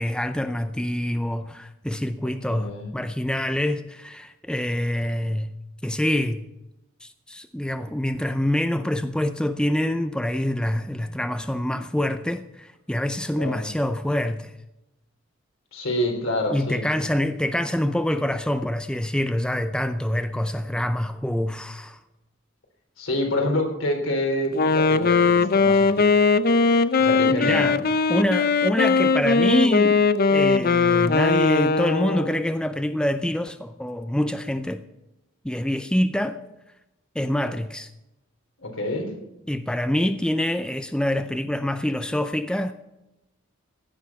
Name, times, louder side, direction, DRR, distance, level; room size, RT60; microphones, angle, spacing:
voice 1, 0.0-5.5 5.8-6.4 7.0-14.5 16.5-22.0 27.3-30.0 30.3-34.8 35.4-36.4 37.2-37.9 39.5-42.7, left 1 dB, 5° left, 0.5 m, -26 dB
voice 2, 2.5-3.0 13.4-13.7 15.7-16.8 23.0-26.1 27.0-27.6 38.6-39.1, left 1 dB, 70° left, 3.6 m, -27 dB
Wind instrument woodwind instrument, 24.5-32.5, left 4 dB, 45° left, 0.6 m, -20 dB
16.0 x 9.8 x 5.9 m
head